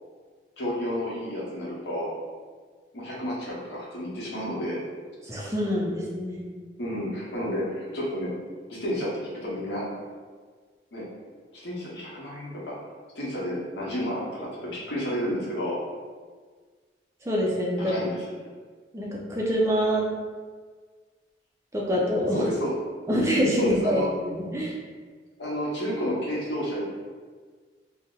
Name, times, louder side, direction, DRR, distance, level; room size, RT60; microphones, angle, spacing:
voice 1, 0.6-2.1 2.9-4.8 6.8-8.3 8.7-9.8 10.9-11.1 11.5-12.8 13.1-15.8 17.8-18.2 22.3-22.8 23.6-24.0 25.4-26.8, equal, 70° left, -6 dB, 0.9 m, -31 dB
voice 2, 5.2-6.5 17.2-17.9 18.9-20.1 21.7-22.4 23.1-24.8, equal, 15° right, -4 dB, 0.4 m, -25 dB
2.7 x 2.1 x 3.6 m, 1.5 s
head